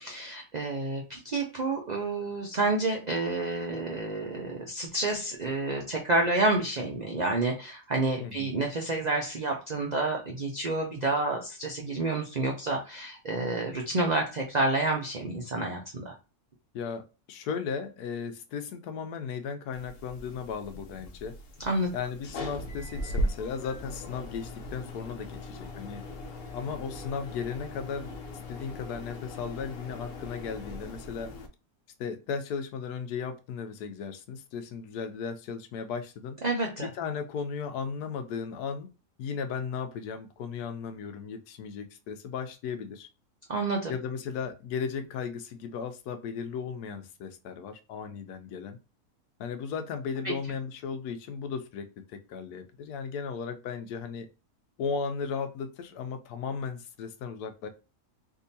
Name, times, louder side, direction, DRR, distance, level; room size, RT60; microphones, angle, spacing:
voice 1, 0.0-16.1 21.6-21.9 36.4-36.9 43.5-43.9 50.2-50.3, right 2 dB, 70° right, 0.4 m, -29 dB
voice 2, 8.2-8.5 16.7-17.0 17.3-21.3 21.9-26.0 26.5-28.1 28.5-31.3 32.0-36.4 36.8-38.9 39.2-43.1 43.9-48.8 49.4-54.3 54.8-57.7, left 6 dB, 90° left, 1.1 m, -36 dB
sound 1, 19.7-31.5, left 1 dB, 65° left, 0.6 m, -38 dB
3.6 x 2.7 x 2.6 m
omnidirectional pair, 1.6 m